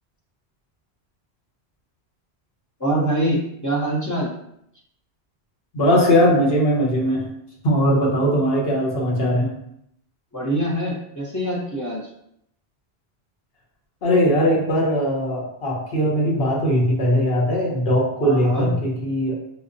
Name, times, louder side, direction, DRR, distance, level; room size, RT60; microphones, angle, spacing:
voice 1, 2.8-4.3 10.3-12.0 18.2-18.7, right 1 dB, 20° left, -4 dB, 0.6 m, -24 dB
voice 2, 5.7-7.2 7.6-9.5 14.0-19.4, equal, 60° left, -3 dB, 1.1 m, -20 dB
5.3 x 2.1 x 2.6 m, 0.74 s
omnidirectional pair, 1.1 m